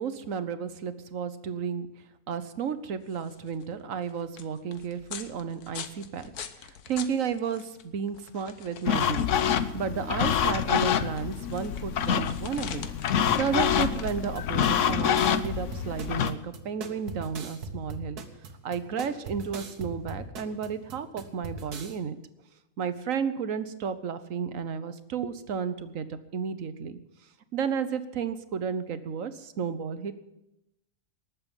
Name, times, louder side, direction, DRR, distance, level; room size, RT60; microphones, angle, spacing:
voice 1, 0.0-1.9 2.3-12.9 13.3-18.2 18.6-22.2 22.8-27.0 27.5-30.1, right 7 dB, 60° right, 12 dB, 1.3 m, -32 dB
sound 1, 2.9-17.5, left 8 dB, 80° left, 1.5 m, -45 dB
sound 2, 8.9-16.3, left 8 dB, 60° left, 1.0 m, -26 dB
sound 3, 13.3-22.0, right 2 dB, 85° right, 1.9 m, -40 dB
19.0 x 7.5 x 8.9 m, 0.89 s
omnidirectional pair, 1.6 m